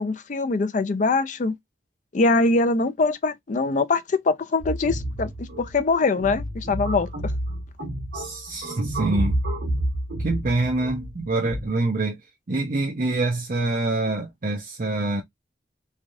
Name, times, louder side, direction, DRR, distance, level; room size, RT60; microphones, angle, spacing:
voice 1, 0.0-1.5 2.1-7.3, left 3 dB, 45° left, 0.4 m, -23 dB
sound 1, 4.6-11.7, right 1 dB, 75° right, 1.4 m, -30 dB
voice 2, 8.1-9.4 10.2-12.2 12.5-15.2, right 2 dB, 50° right, 0.6 m, -25 dB
3.2 x 2.4 x 2.5 m
head